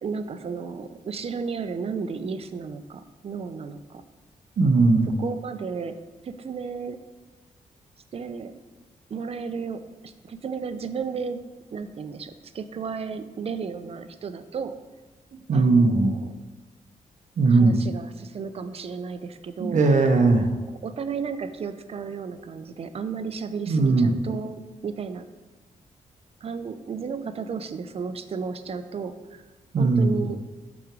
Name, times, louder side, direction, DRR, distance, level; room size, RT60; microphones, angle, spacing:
voice 1, 0.0-4.0 5.2-6.0 6.2-7.0 8.1-8.5 9.1-11.4 11.7-14.7 15.5-16.4 17.5-19.8 20.8-25.2 26.4-29.4 29.8-30.4, right 5 dB, 45° right, 10 dB, 0.5 m, -33 dB
voice 2, 4.6-5.1 15.5-16.1 17.4-17.7 19.6-20.5 23.7-24.1 29.7-30.1, right 3 dB, 65° right, 5 dB, 1.0 m, -19 dB
6.1 x 5.0 x 6.1 m, 1.2 s
cardioid pair, 110°, 14 cm